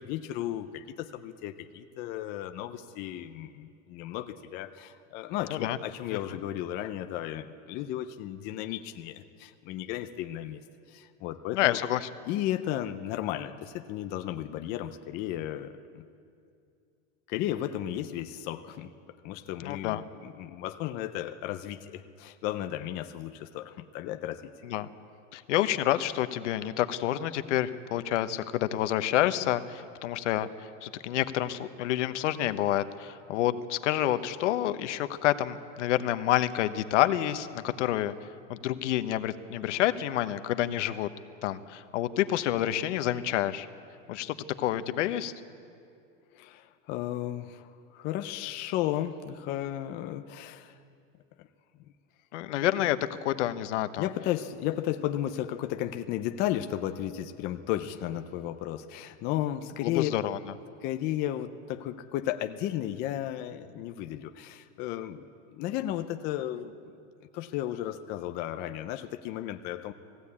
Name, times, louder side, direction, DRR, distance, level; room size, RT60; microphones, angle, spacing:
voice 1, 0.0-10.6 10.9-11.8 12.3-16.0 17.3-18.9 19.2-24.5 46.3-50.8 51.4-51.5 54.0-60.1 60.8-66.7 67.3-69.9, left 12 dB, 25° left, 8 dB, 0.5 m, -34 dB
voice 2, 11.5-12.1 19.6-20.0 24.6-24.9 25.3-38.1 38.5-41.1 41.4-43.7 44.1-45.3 52.3-54.1 59.8-60.4, left 13 dB, 75° left, 11 dB, 1.0 m, -28 dB
20.0 x 15.5 x 8.4 m, 2.4 s
supercardioid pair, 160°, 36 cm